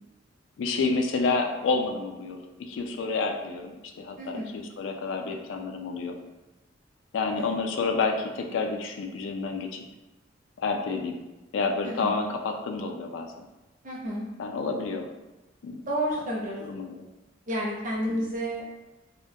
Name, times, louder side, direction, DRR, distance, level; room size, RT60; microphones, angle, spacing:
voice 1, 0.6-6.2 7.1-9.8 10.6-11.2 11.5-13.5 14.4-15.1 15.6-15.8 16.6-17.1 18.1-18.3, left 4 dB, 70° left, 4 dB, 0.3 m, -29 dB
voice 2, 4.2-4.5 7.4-7.5 11.8-12.1 13.8-14.3 15.9-16.6 17.5-18.7, equal, 45° right, -4 dB, 0.6 m, -30 dB
2.2 x 2.1 x 2.6 m, 1.1 s
head